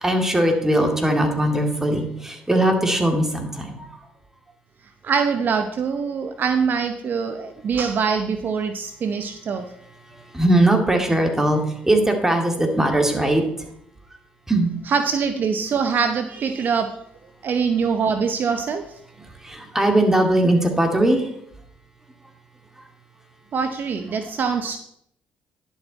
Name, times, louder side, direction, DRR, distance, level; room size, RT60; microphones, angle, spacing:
voice 1, 0.0-3.9 10.1-13.7 14.5-14.7 19.2-21.3 22.8-22.9, right 1 dB, 10° right, 3 dB, 2.4 m, -20 dB
voice 2, 5.0-9.7 14.9-17.0 17.4-18.8 23.5-24.8, right 6 dB, 50° right, 8 dB, 0.8 m, -23 dB
10.5 x 7.2 x 4.0 m, 0.71 s
supercardioid pair, 65°, 4 cm